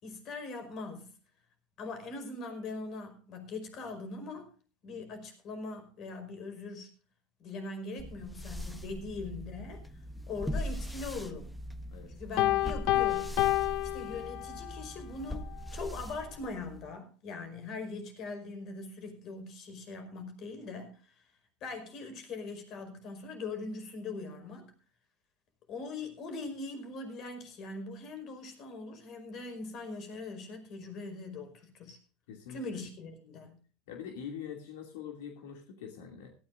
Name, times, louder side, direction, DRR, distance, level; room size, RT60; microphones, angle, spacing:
voice 1, 0.0-1.1 1.8-4.5 4.8-6.9 7.4-11.6 12.1-13.3 13.6-21.3 21.6-24.7 25.7-32.0 32.5-33.6, left 3 dB, 45° left, 7 dB, 5.2 m, -41 dB
sound 1, 8.0-16.9, equal, 5° left, 1.1 m, -41 dB
Piano, 12.4-14.8, left 16 dB, 65° left, 0.7 m, -29 dB
voice 2, 32.3-32.6 33.9-36.3, left 8 dB, 85° left, 3 dB, 2.6 m, -43 dB
17.5 x 14.5 x 2.6 m, 0.37 s
supercardioid pair, 125°, 0 cm